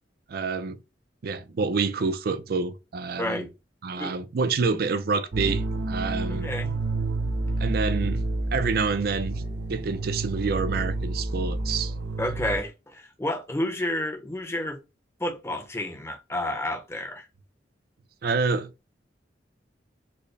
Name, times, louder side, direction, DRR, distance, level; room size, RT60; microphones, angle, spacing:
voice 1, 0.3-0.8 1.2-3.5 3.8-6.5 7.6-8.2 8.5-9.4 9.7-11.9 18.2-18.9, right 4 dB, 55° right, 0.4 m, -27 dB
sound 1, 5.3-12.6, right 2 dB, 80° right, 0.8 m, -29 dB
voice 2, 6.3-6.8 12.2-14.8 15.2-17.3, left 1 dB, 15° left, 0.7 m, -30 dB
4.2 x 2.1 x 3.2 m
head